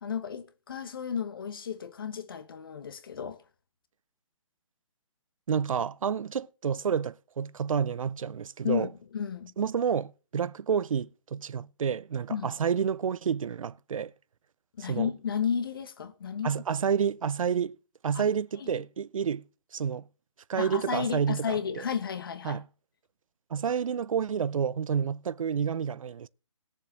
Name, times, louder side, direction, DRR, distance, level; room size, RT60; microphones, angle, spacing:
voice 1, 0.0-3.4 8.6-9.5 12.3-12.5 14.8-16.6 18.1-18.2 18.6-18.8 20.6-22.6, left 7 dB, 40° left, 1.2 m, -33 dB
voice 2, 5.5-8.9 9.6-14.1 14.8-15.1 16.4-17.8 18.0-19.4 19.7-20.0 20.5-21.8 22.4-22.6 23.5-26.3, right 7 dB, 80° right, 0.5 m, -29 dB
20.5 x 7.2 x 3.0 m
hypercardioid pair, 175°, 17 cm